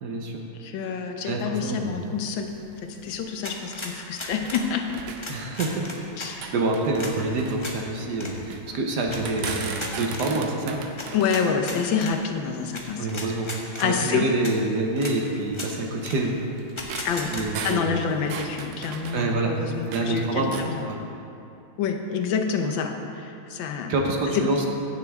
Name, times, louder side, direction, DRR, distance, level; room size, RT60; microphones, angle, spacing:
voice 1, 0.0-0.4 1.3-2.0 5.3-5.8 6.2-9.6 9.9-10.8 13.0-13.5 13.7-16.4 17.3-18.0 19.1-19.5 19.9-21.0 23.9-24.7, right 2 dB, 60° right, 1 dB, 1.3 m, -27 dB
voice 2, 0.6-2.5 2.8-4.8 6.2-6.5 11.1-13.2 13.8-14.3 17.0-17.3 17.6-20.8 21.8-22.9 23.5-23.9 24.3-24.7, left 6 dB, 75° left, 4 dB, 1.5 m, -27 dB
sound 1, 1.6-4.6 4.9-6.0 6.3-8.6 9.1-13.1 13.7-13.8 14.3-14.4 15.2-20.1 20.4-20.8, right 5 dB, 85° right, 1.6 m, -38 dB
sound 2, 3.4-4.7 5.2-6.3 6.9-7.1 7.6-7.8 8.1-8.3 9.1-10.3 11.0-12.1 12.7-12.8 13.1-13.9 14.4-14.5 15.0-15.1 15.5-15.7 16.0-16.2 16.8-17.4, left 2 dB, 40° left, 0.4 m, -36 dB
15.5 x 6.9 x 3.6 m, 2.8 s
omnidirectional pair, 2.2 m